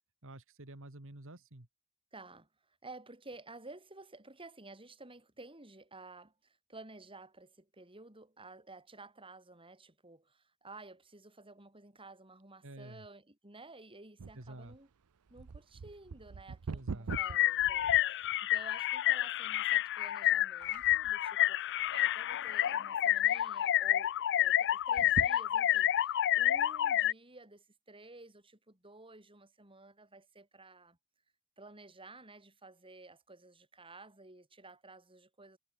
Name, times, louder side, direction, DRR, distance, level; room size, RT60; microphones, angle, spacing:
voice 1, 0.2-1.7 12.6-13.1 14.3-14.8 16.7-17.1, right 1 dB, 60° right, 2.3 m, -49 dB
voice 2, 2.1-2.5 2.8-14.9 15.3-21.6 21.9-31.0 31.6-35.6, right 2 dB, 25° right, 6.4 m, -53 dB
sound 1, 14.2-18.7 19.2-19.3 20.0-20.3 20.6-21.3 21.8-22.5 22.9-23.0 23.2-23.3 24.8-25.9 26.5-26.6, right 4 dB, 85° right, 0.6 m, -43 dB
sound 2, 17.1-27.1, left 12 dB, 55° left, 0.4 m, -29 dB
head